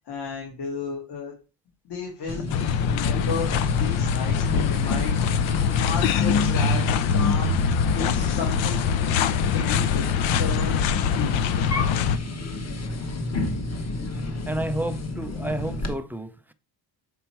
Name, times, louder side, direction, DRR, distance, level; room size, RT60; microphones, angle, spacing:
voice 1, 0.1-1.3 1.8-5.4 5.8-6.9 7.1-7.6 7.9-9.3 9.5-10.1 10.4-10.8 11.1-11.3, left 5 dB, 60° left, 2.2 m, -33 dB
sound 1, 2.3-15.9, left 2 dB, 35° left, 1.1 m, -29 dB
sound 2, 2.5-12.2, left 8 dB, 80° left, 0.7 m, -24 dB
voice 2, 14.5-16.5, right 1 dB, 5° right, 0.4 m, -31 dB
6.9 x 4.5 x 4.5 m
cardioid pair, 135°, 46 cm